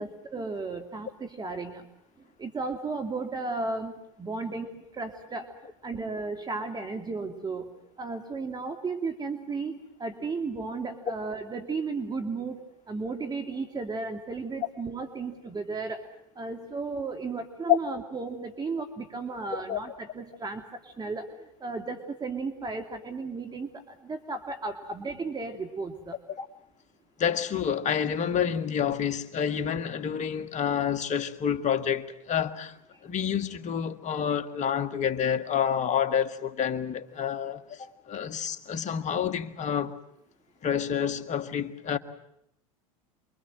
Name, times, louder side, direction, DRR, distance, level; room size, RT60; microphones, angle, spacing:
voice 1, 0.0-1.9 2.4-5.5 5.8-12.6 12.9-16.0 16.4-21.3 21.6-26.2 32.9-33.0, right 3 dB, 20° right, 2.6 m, -34 dB
voice 2, 27.2-32.8 33.0-39.9 40.6-42.0, left 8 dB, 40° left, 2.1 m, -28 dB
28.5 x 23.5 x 7.7 m
hypercardioid pair, 85°, 19 cm